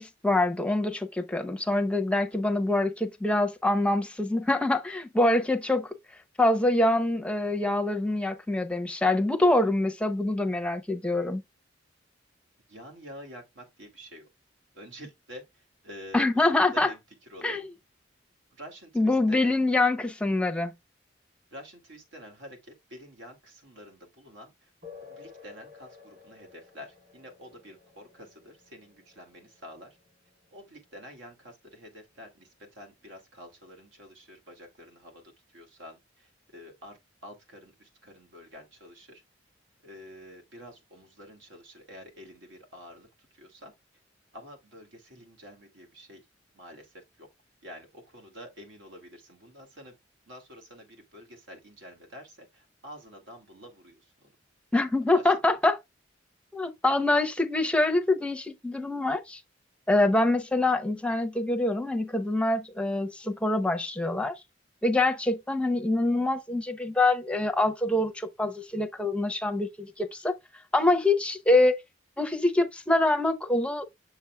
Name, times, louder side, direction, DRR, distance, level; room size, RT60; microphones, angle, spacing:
voice 1, 0.0-5.9 6.4-11.4 16.1-16.9 17.4-17.7 18.9-20.7 54.7-55.8 56.5-59.4 59.9-64.4 64.8-70.3 70.7-71.8 72.2-73.9, left 2 dB, 5° left, 0.7 m, -25 dB
voice 2, 12.7-14.3 14.7-16.3 16.5-17.0 17.3-17.6 18.5-19.5 21.5-24.7 25.0-30.0 30.5-35.2 35.5-37.0 37.2-39.2 39.8-43.7 44.3-46.2 46.5-47.3 47.6-49.9 50.3-54.3 55.1-55.3, equal, 75° right, 2.2 m, -48 dB
sound 1, 24.8-32.8, left 5 dB, 50° right, 4.9 m, -53 dB
7.0 x 6.9 x 2.2 m
head